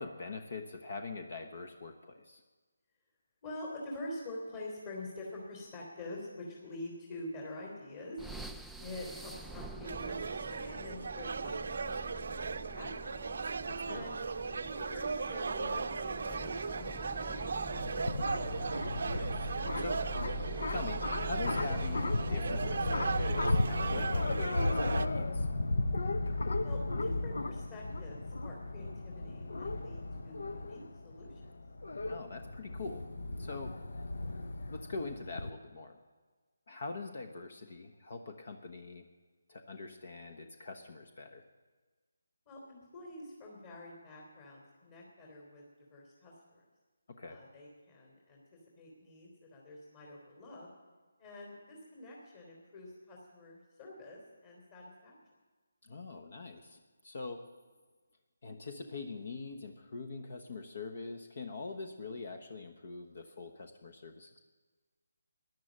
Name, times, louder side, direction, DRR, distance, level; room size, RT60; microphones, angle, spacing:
voice 1, 0.0-2.4 13.7-14.1 19.1-19.5 19.8-20.1 20.3-25.5 32.1-33.1 33.4-33.8 34.7-36.0 36.7-39.0 39.5-41.4 47.1-47.4 55.8-57.5 58.4-64.4, left 3 dB, 55° left, 7 dB, 1.1 m, -43 dB
voice 2, 3.4-8.2 8.8-13.3 13.9-14.2 14.7-16.9 17.2-18.7 26.6-31.5 42.5-45.6 45.9-46.6 47.2-50.7 51.2-55.2, left 1 dB, 35° left, -2 dB, 3.4 m, -47 dB
sound 1, 8.2-24.3, right 3 dB, ahead, 0.4 m, -46 dB
sound 2, 9.8-25.1, right 4 dB, 60° right, 0.6 m, -37 dB
sound 3, 17.4-35.5, left 2 dB, 70° left, 0.8 m, -35 dB
14.0 x 10.5 x 7.5 m, 1.4 s
figure-of-eight pair, 160°, 0 cm